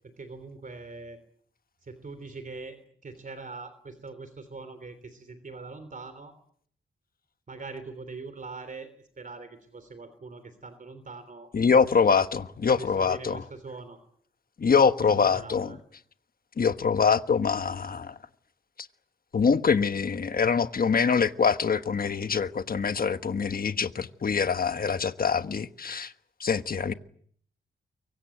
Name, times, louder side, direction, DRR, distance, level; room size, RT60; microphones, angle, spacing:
voice 1, 0.2-1.2 1.8-6.3 7.5-8.9 9.2-11.5 12.7-14.0 15.0-15.8, right 3 dB, 40° right, 3.3 m, -42 dB
voice 2, 11.5-13.4 14.6-15.7 16.6-18.1 19.3-26.1 26.4-26.9, left 6 dB, 45° left, 1.3 m, -24 dB
24.0 x 23.5 x 9.1 m
wide cardioid pair, 140°, 20 cm